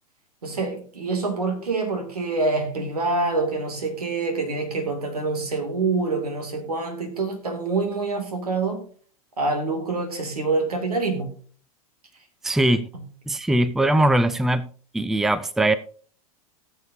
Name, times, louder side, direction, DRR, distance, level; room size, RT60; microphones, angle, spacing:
voice 1, 0.4-8.8 9.4-11.3 12.9-13.0, right 3 dB, 85° right, 2.7 m, -26 dB
voice 2, 12.4-12.9 13.3-14.7 14.9-15.7, right 1 dB, ahead, 0.5 m, -20 dB
18.5 x 6.9 x 2.8 m
hypercardioid pair, 95°, 19 cm